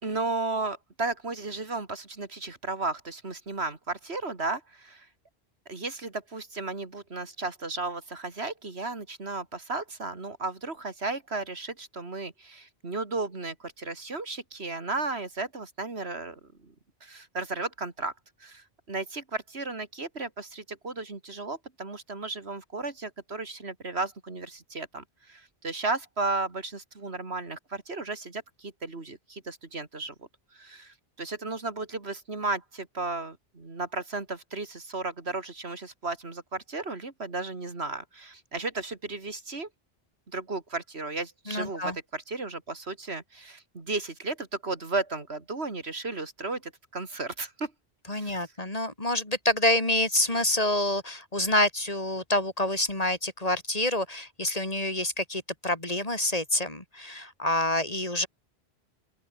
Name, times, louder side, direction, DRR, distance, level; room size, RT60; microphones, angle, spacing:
voice 1, 0.0-5.1 5.7-16.7 17.0-18.1 18.4-39.7 40.3-47.7 48.1-48.5, right 3 dB, 80° right, 3.1 m, -34 dB
voice 2, 41.5-42.0 48.1-58.3, left 1 dB, 35° left, 3.9 m, -27 dB
open air
omnidirectional pair, 1.1 m